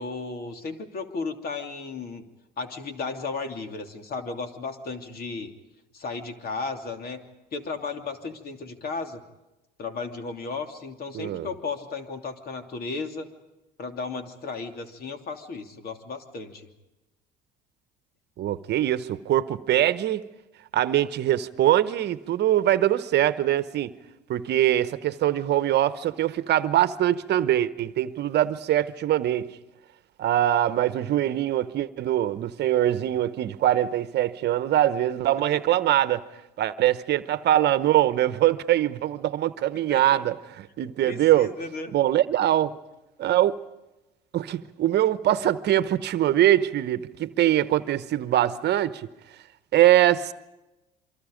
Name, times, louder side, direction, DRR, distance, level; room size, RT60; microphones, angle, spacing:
voice 1, 0.0-2.2 2.6-5.5 5.9-7.2 7.5-9.2 9.8-13.3 13.8-16.7 39.9-40.2 41.0-41.9, left 4 dB, 50° left, 3.0 m, -34 dB
voice 2, 11.1-11.5 18.4-20.2 20.7-23.9 24.3-29.5 30.2-36.2 36.6-41.5 41.9-42.8 43.2-43.6 44.3-49.1 49.7-50.3, right 12 dB, 55° right, 1.1 m, -23 dB
27.5 x 24.5 x 5.2 m
hypercardioid pair, 75°, 21 cm